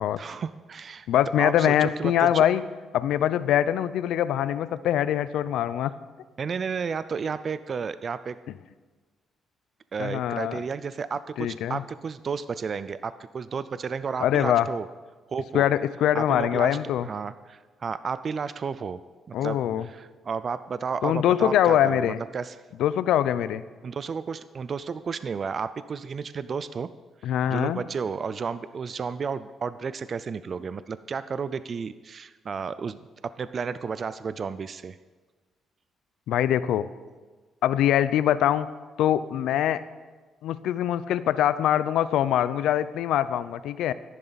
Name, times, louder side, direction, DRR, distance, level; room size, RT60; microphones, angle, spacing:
voice 1, 0.2-1.1 1.4-2.5 6.4-8.4 9.9-14.9 15.3-15.7 16.1-19.0 19.3-19.6 19.8-22.6 23.8-26.9 27.2-35.0, right 5 dB, 45° right, 14 dB, 0.4 m, -32 dB
voice 2, 1.1-2.6 2.9-5.9 10.0-10.6 11.4-11.8 14.2-14.7 15.5-17.1 19.3-19.9 21.0-22.2 22.8-23.6 27.2-27.8 36.3-36.9 37.6-38.7 39.0-39.8 40.4-43.9, left 11 dB, 85° left, 15 dB, 0.5 m, -23 dB
13.5 x 11.0 x 4.1 m, 1.3 s
cardioid pair, 90°, 0 cm